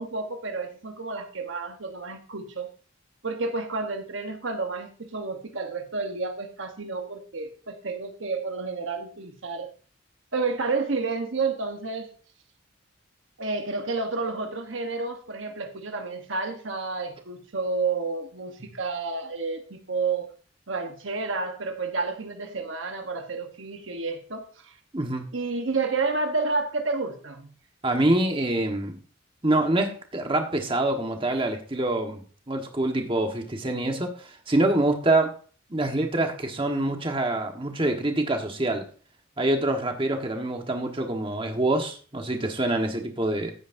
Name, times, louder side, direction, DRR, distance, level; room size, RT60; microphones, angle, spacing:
voice 1, 0.0-2.7 3.2-9.7 10.3-12.1 13.4-20.3 20.7-24.7 25.3-27.5, right 4 dB, 70° right, 1.2 m, -30 dB
voice 2, 27.8-29.0 29.4-35.3 35.7-38.8 39.4-43.5, right 2 dB, 25° right, 1.4 m, -25 dB
15.0 x 9.5 x 2.7 m
head